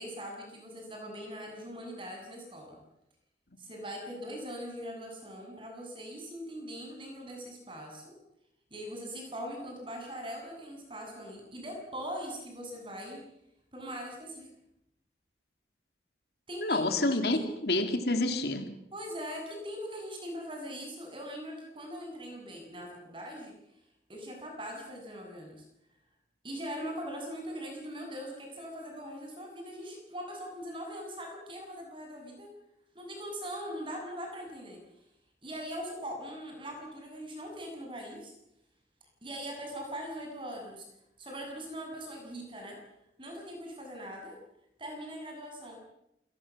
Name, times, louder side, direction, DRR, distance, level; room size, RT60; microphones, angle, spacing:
voice 1, 0.0-2.8 3.6-8.1 8.7-13.2 13.7-14.5 16.5-16.8 17.3-17.4 18.9-23.5 24.1-25.6 26.4-32.5 32.9-34.8 35.4-38.3 39.2-40.9 41.2-42.8 43.2-44.3 44.8-45.9, equal, 30° right, 2 dB, 7.8 m, -41 dB
voice 2, 16.6-18.7, left 2 dB, 70° left, 7 dB, 2.7 m, -28 dB
27.5 x 20.5 x 7.4 m, 0.83 s
head